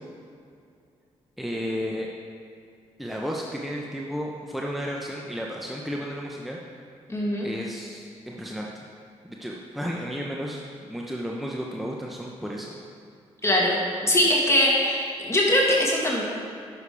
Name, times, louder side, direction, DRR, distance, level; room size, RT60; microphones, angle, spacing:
voice 1, 1.4-2.1 3.0-6.6 7.4-8.8 9.2-12.8, equal, ahead, -2 dB, 0.9 m, -33 dB
voice 2, 7.1-7.5 13.4-16.2, left 1 dB, 20° left, -3 dB, 1.8 m, -22 dB
10.5 x 6.6 x 3.5 m, 2.4 s
supercardioid pair, 55°, 13 cm